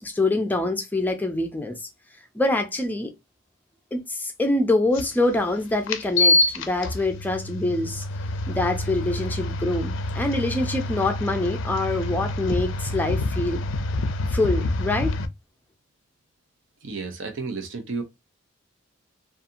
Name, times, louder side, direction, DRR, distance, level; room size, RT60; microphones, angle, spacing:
voice 1, 0.0-1.9 2.3-3.1 3.9-8.0 8.5-13.6 14.3-15.1, left 2 dB, 10° left, 0.4 m, -25 dB
sound 1, 4.9-5.0 5.9-15.3, left 2 dB, 85° left, 0.4 m, -26 dB
voice 2, 16.8-18.0, right 4 dB, 90° right, 0.6 m, -32 dB
2.7 x 2.4 x 2.5 m
head